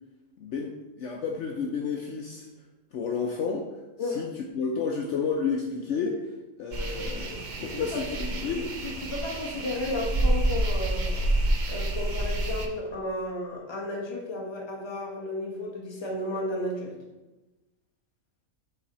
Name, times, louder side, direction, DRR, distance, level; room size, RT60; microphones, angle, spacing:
voice 1, 0.4-2.5 2.9-3.7 4.0-4.3 4.6-6.2 6.6-8.6, left 5 dB, 65° left, 1 dB, 0.9 m, -31 dB
sound 1, 6.7-12.7, right 1 dB, 50° right, 0.5 m, -28 dB
voice 2, 7.7-8.0 8.3-11.2 11.7-16.9, left 1 dB, 20° left, -1 dB, 1.0 m, -33 dB
6.9 x 4.1 x 4.1 m, 1.1 s
omnidirectional pair, 1.5 m